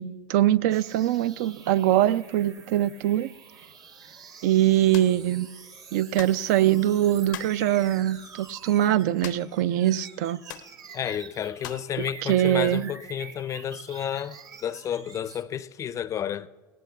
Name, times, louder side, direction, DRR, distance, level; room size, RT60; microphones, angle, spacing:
voice 1, 0.0-3.3 4.4-5.5 5.9-10.4 12.2-12.9, right 12 dB, 75° right, 0.4 m, -23 dB
sound 1, 0.7-15.4, right 6 dB, 40° right, 1.0 m, -47 dB
sound 2, 4.9-5.2 6.2-6.4 7.3-7.6 9.2-9.6 9.9-10.0 10.5-10.7 11.6-11.9, left 12 dB, 90° left, 0.6 m, -40 dB
voice 2, 10.9-16.5, left 9 dB, 30° left, 0.4 m, -31 dB
18.5 x 17.5 x 2.3 m
supercardioid pair, 110°, 10 cm